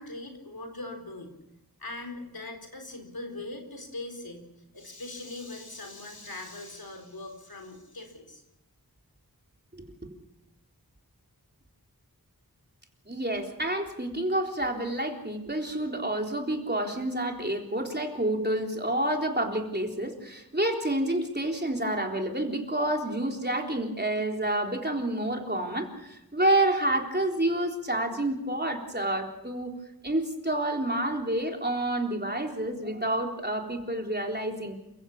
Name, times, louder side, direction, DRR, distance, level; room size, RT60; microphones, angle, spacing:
voice 1, 0.0-1.3 1.8-4.5 4.7-8.4, left 2 dB, 75° left, 5 dB, 4.4 m, -41 dB
voice 2, 13.1-29.7 30.0-34.8, right 1 dB, 30° right, 2 dB, 3.8 m, -29 dB
28.5 x 15.5 x 7.2 m, 0.91 s
wide cardioid pair, 50°, 36 cm